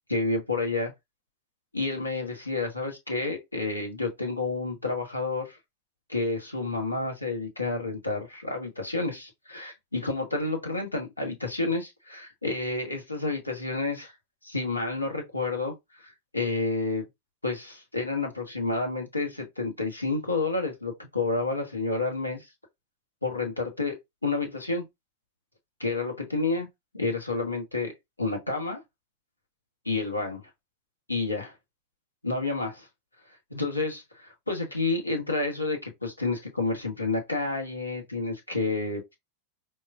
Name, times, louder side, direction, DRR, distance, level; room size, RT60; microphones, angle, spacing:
voice 1, 0.1-0.9 1.7-5.6 6.1-14.1 14.4-17.1 17.4-22.5 23.2-24.0 24.2-24.8 25.8-26.7 26.9-27.9 28.2-28.8 29.8-30.4 31.1-31.5 32.2-32.9 33.5-39.2, left 3 dB, 85° left, 1.0 m, -30 dB
4.7 x 2.2 x 2.3 m
figure-of-eight pair, 90°, 0 cm